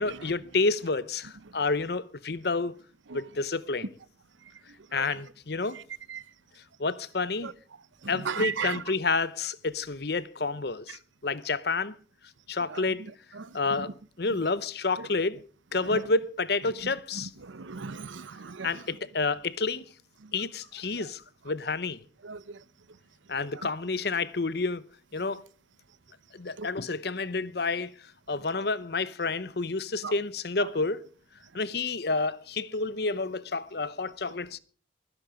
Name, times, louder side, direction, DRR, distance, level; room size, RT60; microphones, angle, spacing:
voice 1, 0.0-2.7 3.1-3.9 4.9-5.8 6.8-7.5 8.1-11.9 12.5-13.0 13.5-15.4 15.7-17.3 18.6-19.8 20.3-22.0 23.3-24.8 25.1-25.4 26.3-27.9 28.3-31.1 31.5-34.6, left 3 dB, 55° left, 0.8 m, -29 dB
voice 2, 8.3-8.8 15.9-16.0 17.4-18.7 22.2-22.4 26.6-26.7 30.0-30.1, right 6 dB, 80° right, 0.7 m, -34 dB
22.5 x 11.0 x 5.1 m
head